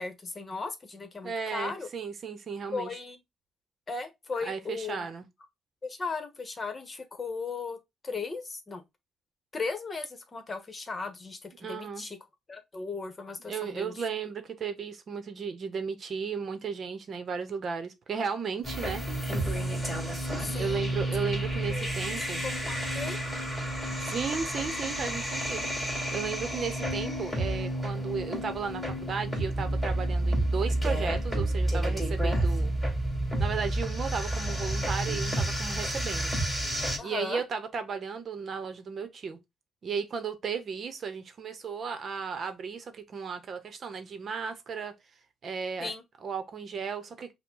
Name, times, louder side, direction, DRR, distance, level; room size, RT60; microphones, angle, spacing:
voice 1, 0.0-1.9 2.7-3.2 3.9-5.1 5.8-7.8 8.0-8.8 9.5-12.2 12.5-13.9 20.4-20.9 21.7-23.2 37.0-37.4 45.8-46.0, left 4 dB, 30° left, 1.1 m, -37 dB
voice 2, 1.2-3.0 4.4-5.3 11.6-12.1 13.5-19.0 20.6-22.4 24.0-25.7 26.1-32.7 33.4-36.3 37.0-39.4 39.8-44.9 45.4-45.9 46.2-47.3, right 6 dB, 50° right, 0.9 m, -35 dB
sound 1, 18.6-37.0, right 1 dB, 5° left, 2.6 m, -30 dB
5.8 x 2.2 x 3.8 m
cardioid pair, 90°, 0 cm